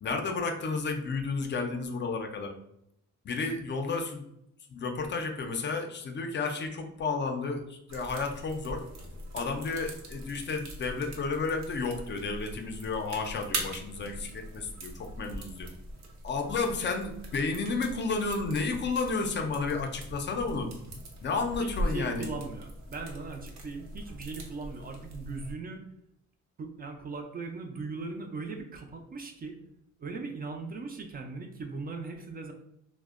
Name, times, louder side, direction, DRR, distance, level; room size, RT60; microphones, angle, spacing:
voice 1, 0.0-2.5 3.2-4.2 4.7-8.8 9.3-15.7 16.2-20.7 21.2-22.3, left 4 dB, 40° left, 4 dB, 0.4 m, -32 dB
sound 1, 7.9-25.5, right 1 dB, 65° right, 0.7 m, -42 dB
voice 2, 21.6-25.8 26.6-29.6 30.0-32.5, right 4 dB, 30° right, 3 dB, 0.4 m, -39 dB
2.5 x 2.1 x 2.3 m, 0.77 s
cardioid pair, 90°, 30 cm